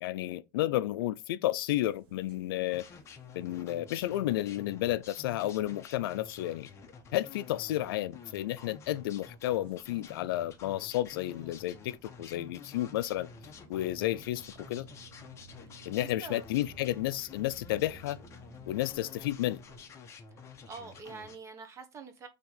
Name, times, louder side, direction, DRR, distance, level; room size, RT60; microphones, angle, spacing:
voice 1, 0.0-2.8 3.3-6.7 7.1-13.3 13.7-14.9 15.9-18.2 18.7-19.6, left 14 dB, 85° left, 0.4 m, -32 dB
sound 1, 1.7-19.9, right 3 dB, 80° right, 1.2 m, -58 dB
sound 2, 2.7-21.4, left 5 dB, 25° left, 0.7 m, -50 dB
voice 2, 15.7-16.5 20.4-22.3, right 5 dB, 25° right, 0.9 m, -46 dB
4.3 x 2.9 x 3.9 m
supercardioid pair, 145°, 12 cm